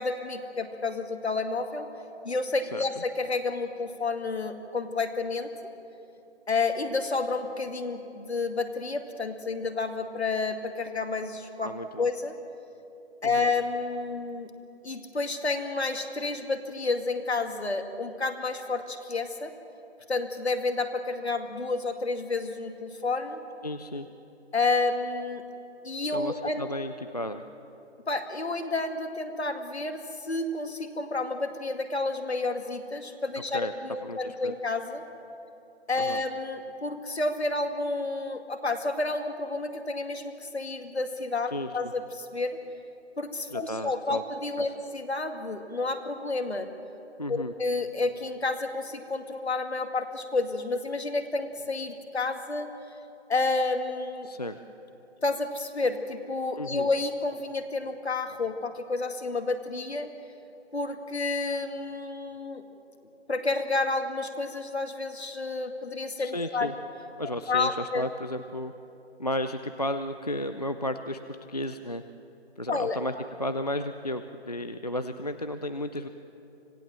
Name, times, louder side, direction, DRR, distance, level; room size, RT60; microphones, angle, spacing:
voice 1, 0.0-1.9 2.2-5.5 6.5-11.7 12.0-12.3 13.2-14.5 14.8-19.5 20.1-23.4 24.5-25.4 25.8-26.6 28.1-35.0 35.9-42.6 43.2-46.7 47.3-52.7 53.3-54.3 55.2-60.1 60.7-62.6 63.3-66.7 67.5-68.1 72.7-73.0, left 3 dB, 70° left, 6 dB, 2.2 m, -30 dB
voice 2, 11.6-12.1 13.2-13.5 23.6-24.1 26.1-27.4 33.5-33.7 34.0-34.5 36.0-36.2 41.5-41.7 43.5-44.2 47.2-47.5 54.2-54.6 56.6-56.9 66.2-66.7 67.2-68.7 69.2-71.2 71.5-72.0 72.6-73.1 73.4-76.1, left 1 dB, 35° left, 9 dB, 0.5 m, -33 dB
26.0 x 18.0 x 7.4 m, 2.9 s
figure-of-eight pair, 175°, 34 cm